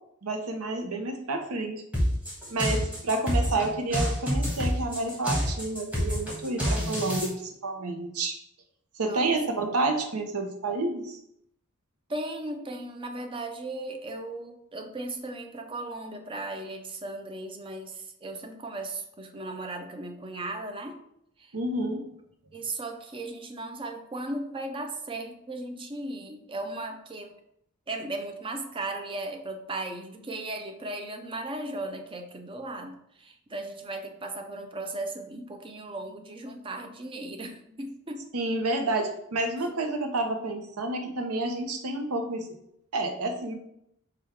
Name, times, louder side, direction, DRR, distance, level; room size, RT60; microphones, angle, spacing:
voice 1, 0.2-1.8 2.5-8.4 8.9-11.2 21.5-22.1 38.3-42.5 42.9-43.5, right 2 dB, 85° right, 5 dB, 0.7 m, -29 dB
sound 1, 1.9-7.3, equal, 5° right, 1.3 m, -27 dB
voice 2, 12.1-21.0 21.4-21.5 22.5-27.3 27.9-38.3, right 2 dB, 25° right, 5 dB, 0.4 m, -36 dB
5.0 x 2.3 x 4.5 m, 0.76 s
head